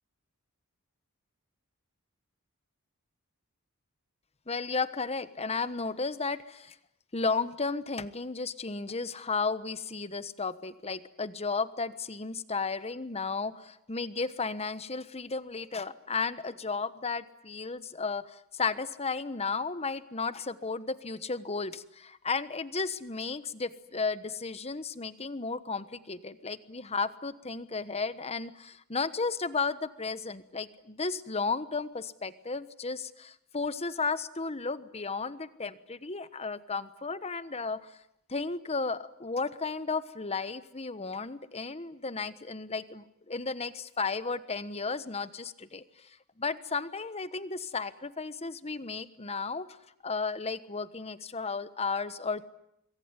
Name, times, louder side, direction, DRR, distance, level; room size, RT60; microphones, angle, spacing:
voice 1, 4.5-6.8 7.1-38.0 38.3-49.7 50.0-52.4, left 4 dB, 30° left, 14 dB, 1.2 m, -34 dB
26.0 x 23.0 x 9.8 m, 0.79 s
head